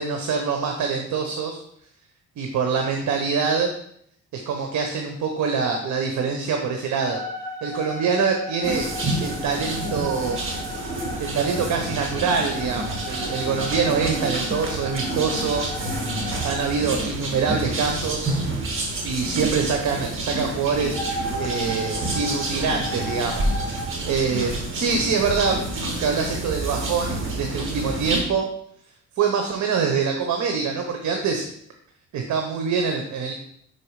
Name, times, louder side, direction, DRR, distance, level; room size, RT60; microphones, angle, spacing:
voice 1, 0.0-1.6 2.4-3.7 4.3-7.2 7.6-8.9 9.2-10.4 10.7-10.9 11.2-15.7 16.4-18.3 19.0-21.0 21.4-25.6 26.0-28.5 29.2-31.5 32.1-33.3, right 5 dB, 70° right, 3 dB, 1.0 m, -25 dB
sound 1, 7.1-16.8 20.9-23.8, left 1 dB, 10° left, 2.3 m, -35 dB
sound 2, 8.6-28.2, right 2 dB, 45° right, 1.8 m, -29 dB
5.8 x 4.6 x 4.8 m, 0.68 s
cardioid pair, 90°, 30 cm